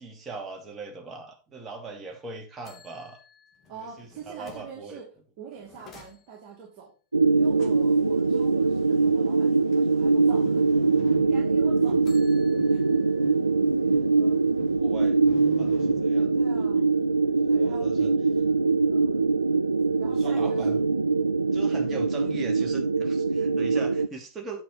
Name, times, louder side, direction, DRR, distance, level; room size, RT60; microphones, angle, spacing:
voice 1, 0.0-3.2 3.8-5.0 14.8-16.7 17.6-18.1 20.2-20.9 21.5-24.6, right 3 dB, 20° right, 1 dB, 2.7 m, -40 dB
sound 1, 2.0-2.2 2.6-4.8 5.5-6.6 11.7-13.3 13.8-13.9 14.3-15.3, left 5 dB, 25° left, 2.5 m, -54 dB
voice 2, 3.7-5.1 5.4-6.9 7.3-10.7 11.2-12.1 12.7-12.8 13.5-14.5 16.3-16.8 17.5-18.2 18.9-19.3 20.0-20.9 21.5-21.7, right 6 dB, 45° right, -2 dB, 2.4 m, -45 dB
sound 2, 7.1-24.1, right 4 dB, 80° right, 0.3 m, -23 dB
sound 3, 7.4-16.0, left 8 dB, 45° left, 2.4 m, -50 dB
8.5 x 7.0 x 4.3 m, 0.34 s
figure-of-eight pair, 90°, 0 cm